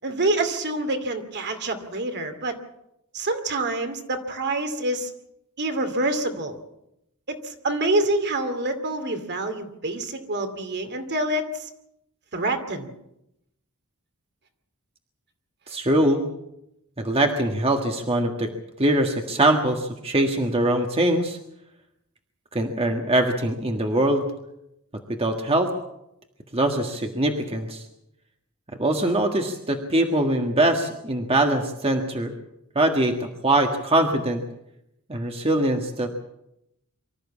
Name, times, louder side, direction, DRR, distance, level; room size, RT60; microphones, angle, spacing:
voice 1, 0.0-2.6 3.1-5.1 5.6-6.6 7.3-11.7 12.3-12.9, right 2 dB, 50° right, 7 dB, 2.5 m, -26 dB
voice 2, 15.7-16.2 17.0-18.5 18.8-21.4 22.5-24.3 25.1-25.7 26.5-27.9 28.8-32.3 32.8-34.4 35.1-36.1, right 1 dB, 25° right, 3 dB, 1.7 m, -22 dB
24.5 x 13.5 x 8.5 m, 0.83 s
head